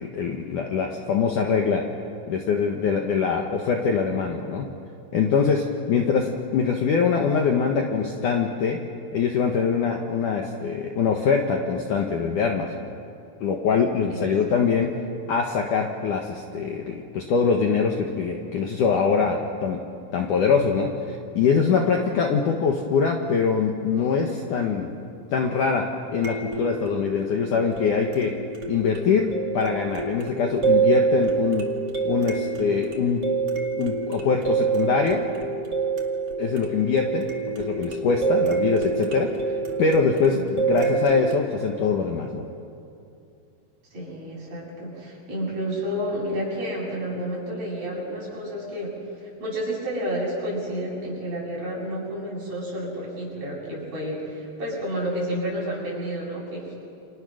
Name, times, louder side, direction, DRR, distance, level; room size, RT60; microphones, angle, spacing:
voice 1, 0.0-1.8 2.3-4.7 5.1-8.8 9.1-12.7 13.4-14.9 15.3-19.8 20.1-20.9 21.3-24.9 25.3-28.3 28.6-31.6 32.0-33.2 33.8-35.2 36.4-39.3 39.8-42.4, left 5 dB, 80° left, 2 dB, 1.8 m, -23 dB
voice 2, 14.1-14.6 40.3-40.4 43.9-48.9 49.4-56.8, equal, 35° right, -4 dB, 9.0 m, -30 dB
sound 1, 21.5-21.6 26.2-41.4, right 5 dB, 80° right, 0.9 m, -26 dB
29.0 x 27.0 x 6.5 m, 2.5 s
omnidirectional pair, 5.8 m